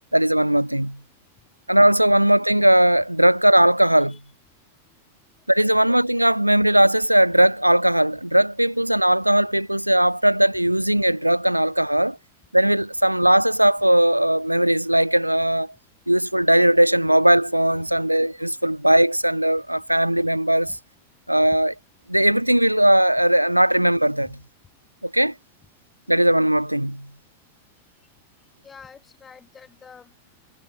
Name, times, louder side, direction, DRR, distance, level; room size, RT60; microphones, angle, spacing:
voice 1, 0.1-1.0 1.7-4.2 5.5-12.2 12.5-15.7 16.1-20.8 21.3-21.7 22.1-24.4 25.0-25.3 26.1-27.1, right 1 dB, 90° right, 0.7 m, -18 dB
voice 2, 3.8-4.2 4.8-5.8 20.6-20.8 28.0-28.1 28.6-30.4, left 6 dB, 20° left, 5.3 m, -50 dB
figure-of-eight pair, 90°, 0 cm